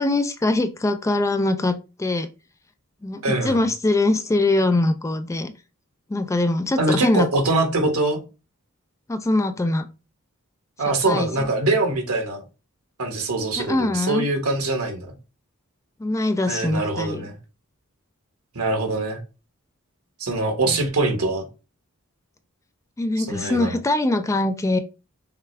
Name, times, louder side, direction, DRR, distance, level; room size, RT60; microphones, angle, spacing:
voice 1, 0.0-2.3 3.0-5.5 6.1-7.3 9.1-9.9 10.9-11.3 13.6-14.3 16.0-17.3 20.6-20.8 23.0-24.8, left 2 dB, 15° left, 0.3 m, -22 dB
voice 2, 3.2-3.6 6.8-8.2 10.8-12.4 13.0-15.1 16.5-17.3 18.5-19.2 20.2-21.4 23.2-23.8, right 2 dB, 80° right, 1.4 m, -23 dB
5.8 x 2.3 x 3.2 m
head